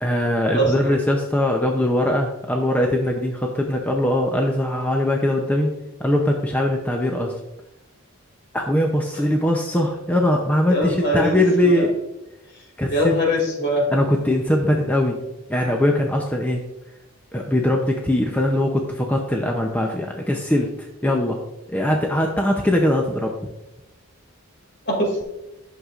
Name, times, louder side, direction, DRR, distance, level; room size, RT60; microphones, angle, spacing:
voice 1, 0.0-5.7 6.0-7.3 8.5-12.0 12.8-13.2 13.9-15.2 15.5-16.6 17.3-21.4 21.7-23.3, left 1 dB, 5° left, 1 dB, 0.6 m, -21 dB
voice 2, 0.5-0.9 10.7-11.8 12.9-13.8 24.9-25.2, equal, 55° left, -1 dB, 2.4 m, -22 dB
11.0 x 6.5 x 2.4 m, 0.94 s
head